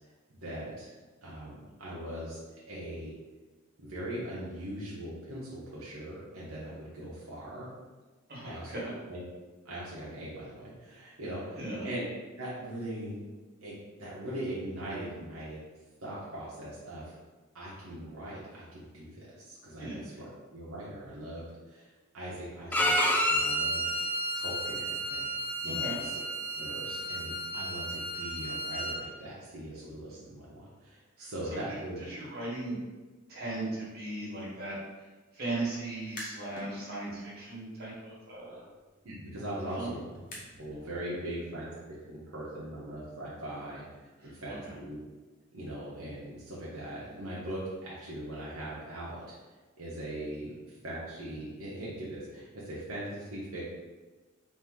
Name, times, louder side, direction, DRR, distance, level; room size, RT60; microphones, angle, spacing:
voice 1, 0.3-0.9 1.2-2.4 2.7-3.1 3.8-7.7 8.4-8.8 9.1-9.2 9.6-12.0 12.4-13.2 13.6-15.6 16.0-17.1 17.5-25.2 25.6-26.0 26.5-32.0 39.0-40.0 40.6-45.0 45.5-49.3 49.8-50.5 50.8-53.6, right 1 dB, 75° right, -8 dB, 1.0 m, -40 dB
voice 2, 8.3-8.9 11.5-11.8 19.8-20.0 25.6-26.0 31.2-31.6 32.1-32.8 33.3-34.8 35.3-38.6 39.7-40.0 44.2-44.7, right 2 dB, 50° right, -7 dB, 1.5 m, -37 dB
Bowed string instrument, 22.7-29.0, equal, 10° left, 0.4 m, -31 dB
sound 1, 36.0-36.7 37.1-40.9, left 1 dB, 40° left, 1.2 m, -49 dB
4.2 x 2.7 x 3.7 m, 1.3 s
head